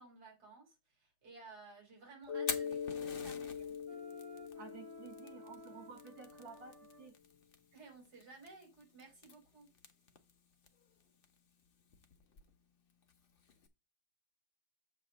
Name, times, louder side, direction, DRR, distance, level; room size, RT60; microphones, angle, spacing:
voice 1, 0.0-3.8 7.7-9.7, right 3 dB, 55° right, 1 dB, 3.6 m, -56 dB
Fire, 2.2-13.7, left 6 dB, 45° left, 0.7 m, -50 dB
Mallet percussion, 2.3-6.7, left 7 dB, 80° left, 1.4 m, -43 dB
Wind instrument woodwind instrument, 3.9-7.1, right 2 dB, 35° right, 1.0 m, -57 dB
voice 2, 4.6-7.1, right 6 dB, 75° right, 4 dB, 2.6 m, -53 dB
7.6 x 3.3 x 6.3 m, 0.27 s
omnidirectional pair, 2.0 m